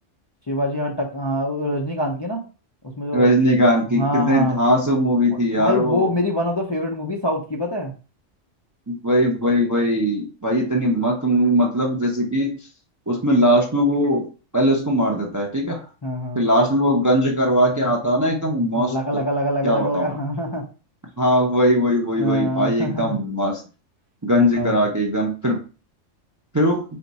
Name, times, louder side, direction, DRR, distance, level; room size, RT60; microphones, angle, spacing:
voice 1, 0.5-2.4 3.0-3.3 3.9-4.6 5.6-7.9 10.7-10.9 16.0-16.4 18.7-20.6 22.2-23.2 24.4-24.8, equal, 35° left, -1 dB, 0.4 m, -24 dB
voice 2, 3.1-6.1 8.9-12.5 13.1-14.3 14.5-15.9 16.3-19.2 19.6-20.2 21.2-23.6 24.2-25.6 26.5-26.8, equal, 25° right, 0 dB, 0.4 m, -20 dB
4.4 x 2.3 x 4.0 m, 0.35 s
omnidirectional pair, 1.3 m